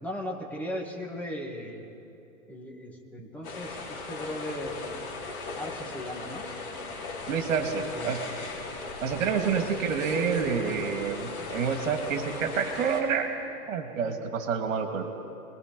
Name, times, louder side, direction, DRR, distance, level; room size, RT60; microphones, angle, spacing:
voice 1, 0.0-1.9 2.5-4.8 5.6-6.5 7.6-8.2 9.3-9.7, left 1 dB, 5° left, -2 dB, 2.1 m, -38 dB
sound 1, 3.4-13.0, left 3 dB, 35° left, 5.5 m, -38 dB
voice 2, 7.3-8.2 9.0-13.3 13.7-15.1, right 6 dB, 65° right, 4 dB, 2.7 m, -28 dB
28.5 x 21.5 x 5.4 m, 2.9 s
hypercardioid pair, 150°, 41 cm